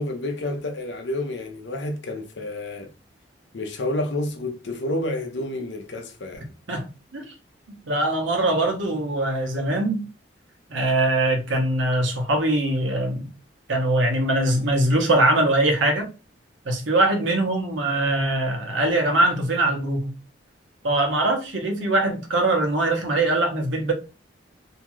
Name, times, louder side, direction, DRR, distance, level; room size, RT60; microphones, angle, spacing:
voice 1, 0.0-2.9 3.5-6.5, left 1 dB, 70° left, 0.7 m, -29 dB
voice 2, 6.7-7.3 7.9-10.0 10.7-13.3 13.7-16.1 16.6-20.1 20.8-23.9, right 2 dB, 85° right, 0.9 m, -22 dB
2.8 x 2.3 x 2.9 m
head